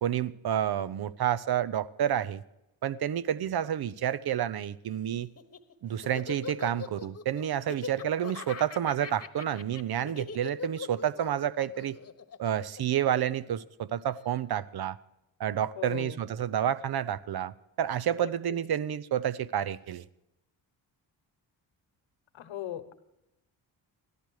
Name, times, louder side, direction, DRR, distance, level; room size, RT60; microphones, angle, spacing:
voice 1, 0.0-2.4 2.8-5.3 5.8-12.0 12.4-15.0 15.4-20.1, right 10 dB, 55° right, 0.6 m, -29 dB
Laughter, 5.2-13.6, left 5 dB, 30° left, 1.2 m, -41 dB
voice 2, 15.8-16.2 18.2-18.3 22.3-22.9, left 11 dB, 80° left, 1.2 m, -38 dB
14.0 x 11.5 x 4.7 m
cardioid pair, 60°, 46 cm